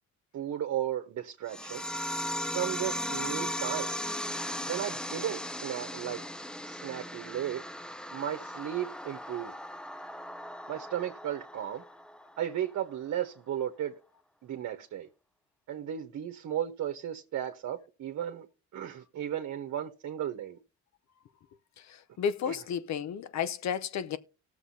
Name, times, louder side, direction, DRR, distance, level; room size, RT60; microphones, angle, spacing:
voice 1, 0.3-1.8 2.5-3.9 4.7-6.2 6.6-7.6 8.1-9.5 10.7-11.8 12.4-13.9 14.4-15.1 15.7-18.5 18.7-20.6 22.4-22.6, right 11 dB, 65° right, 1.1 m, -35 dB
sound 1, 1.5-12.5, left 1 dB, 5° left, 0.4 m, -37 dB
voice 2, 22.2-24.2, left 8 dB, 65° left, 0.8 m, -32 dB
18.5 x 6.8 x 2.7 m
cardioid pair, 90°, 30 cm